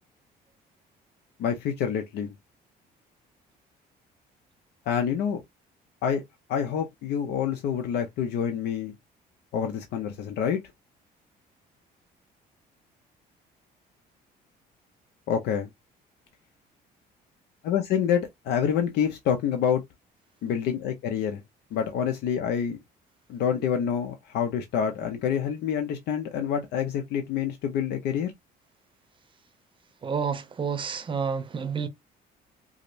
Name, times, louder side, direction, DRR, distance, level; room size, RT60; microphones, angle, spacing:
voice 1, 1.4-2.3 4.9-5.4 6.0-6.2 6.5-8.9 9.5-10.6 15.3-15.7 17.6-19.8 20.4-21.4 21.7-22.8 23.3-28.3, left 8 dB, 75° left, 0.7 m, -27 dB
voice 2, 30.0-31.9, right 6 dB, 30° right, 0.7 m, -29 dB
4.9 x 2.0 x 2.6 m
cardioid pair, 110°, 17 cm